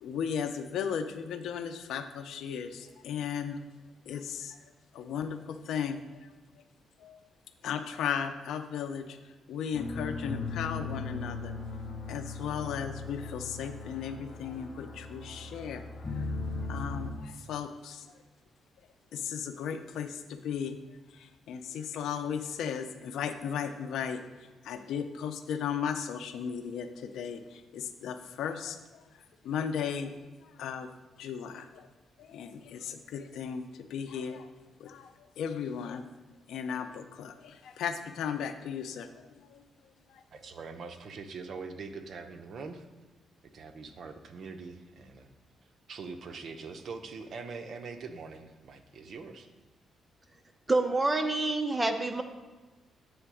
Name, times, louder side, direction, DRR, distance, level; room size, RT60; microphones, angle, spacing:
voice 1, 0.0-3.6 4.1-4.6 4.9-6.3 7.0-7.2 7.6-9.2 9.5-11.6 12.1-15.8 16.1-16.3 16.7-18.1 19.1-24.2 24.6-29.0 29.4-30.9 31.2-31.9 32.2-34.5 34.8-36.0 36.5-39.6 40.1-40.2, left 7 dB, 80° left, 8 dB, 0.5 m, -36 dB
sound 1, 9.7-17.1, left 3 dB, 30° left, 0.9 m, -38 dB
voice 2, 40.3-42.8 43.5-45.3 45.9-49.5, right 4 dB, 60° right, 7 dB, 0.7 m, -43 dB
voice 3, 50.7-52.2, right 2 dB, 15° right, 7 dB, 0.7 m, -27 dB
7.8 x 3.4 x 6.2 m, 1.2 s
cardioid pair, 90°, 0 cm